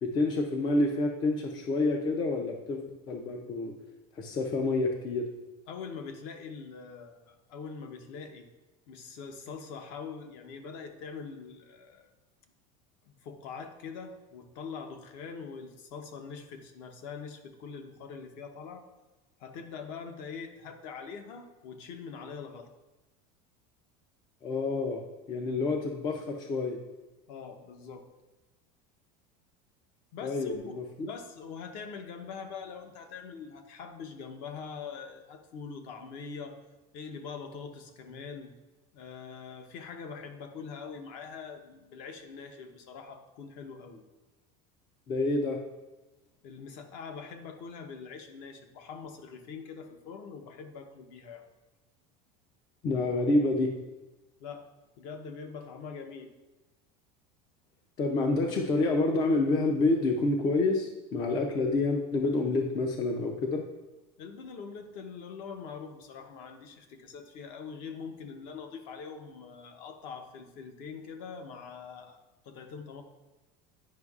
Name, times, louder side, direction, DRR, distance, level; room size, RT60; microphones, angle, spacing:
voice 1, 0.0-3.7 4.2-5.2 24.4-25.0 25.3-26.8 30.2-30.8 45.1-45.6 52.8-53.7 58.0-63.6, left 2 dB, 20° left, 3 dB, 0.4 m, -28 dB
voice 2, 5.7-8.5 8.9-12.1 13.1-18.8 19.4-22.7 27.3-28.0 30.1-36.6 36.9-38.5 38.9-44.0 46.4-51.5 54.4-54.7 55.0-56.3 64.2-73.0, left 5 dB, 50° left, 6 dB, 0.8 m, -43 dB
9.4 x 5.3 x 2.4 m, 1.1 s
cardioid pair, 175°, 19 cm